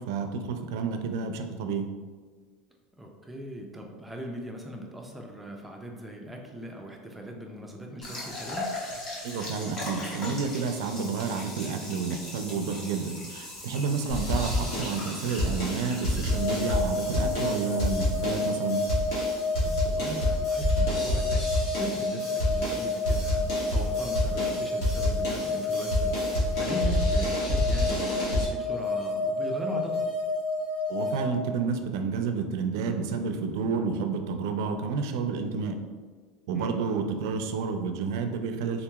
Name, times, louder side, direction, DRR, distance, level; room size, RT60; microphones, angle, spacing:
voice 1, 0.0-1.9 9.2-18.8 30.9-35.8 36.5-38.8, right 5 dB, 85° right, 6 dB, 0.4 m, -30 dB
voice 2, 3.0-8.7 13.9-14.1 19.6-21.5 21.8-30.1 36.5-36.7, right 1 dB, 5° right, 0 dB, 0.4 m, -39 dB
sound 1, 8.0-19.9, left 1 dB, 30° left, 0.9 m, -40 dB
sound 2, 14.1-28.4, left 1 dB, 85° left, 1.4 m, -29 dB
sound 3, 16.3-31.2, left 2 dB, 65° left, 0.8 m, -30 dB
3.8 x 2.8 x 2.3 m, 1.5 s
cardioid pair, 155°, 2 cm